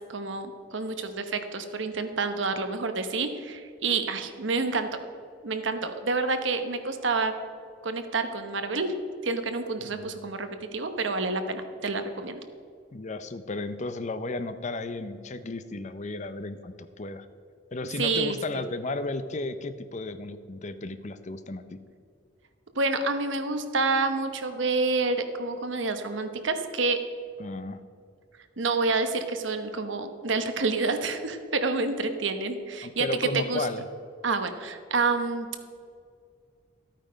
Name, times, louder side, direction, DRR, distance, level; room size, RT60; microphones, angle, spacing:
voice 1, 0.1-4.9 5.4-7.3 7.8-8.9 9.2-12.4 18.0-18.6 22.7-27.0 28.6-33.7 34.2-35.5, right 3 dB, 70° right, 8 dB, 1.0 m, -28 dB
voice 2, 9.9-10.3 12.9-17.3 17.7-21.8 27.4-27.8 32.8-33.8, left 2 dB, 35° left, 11 dB, 0.6 m, -34 dB
13.5 x 9.0 x 5.1 m, 2.3 s
head